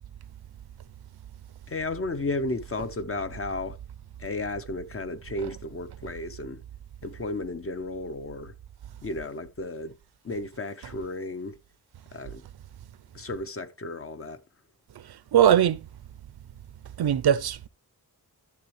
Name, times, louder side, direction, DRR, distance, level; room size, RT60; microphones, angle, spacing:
voice 1, 1.7-3.8 4.2-6.6 7.0-8.5 9.0-10.0 10.2-11.6 12.1-12.4 13.1-14.4, left 2 dB, 35° left, 0.7 m, -33 dB
voice 2, 15.3-15.8 17.0-17.7, right 10 dB, 85° right, 0.6 m, -20 dB
12.0 x 7.1 x 3.1 m
wide cardioid pair, 135°, 37 cm